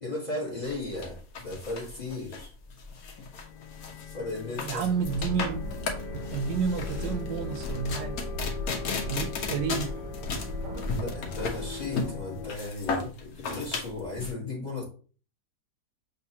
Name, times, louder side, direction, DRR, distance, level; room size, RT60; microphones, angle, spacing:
voice 1, 0.0-2.5 4.1-4.9 10.9-14.8, left 2 dB, 25° left, 1.1 m, -35 dB
sound 1, 0.7-14.3, left 4 dB, 60° left, 1.1 m, -35 dB
sound 2, 2.9-12.5, left 6 dB, 75° left, 1.2 m, -42 dB
voice 2, 4.6-5.6 6.3-8.1 9.0-9.9, right 6 dB, 75° right, 1.2 m, -30 dB
sound 3, 5.0-11.0, equal, 60° right, 0.7 m, -37 dB
6.7 x 2.7 x 2.8 m
omnidirectional pair, 2.0 m